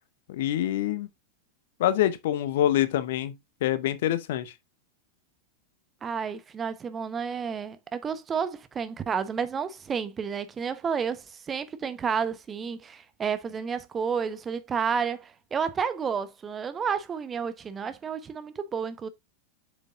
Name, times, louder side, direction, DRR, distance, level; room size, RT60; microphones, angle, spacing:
voice 1, 0.3-1.1 1.8-4.5, left 12 dB, 55° left, 1.0 m, -26 dB
voice 2, 6.0-19.1, right 6 dB, 20° right, 0.9 m, -31 dB
7.7 x 6.8 x 2.4 m
figure-of-eight pair, 90°, 0 cm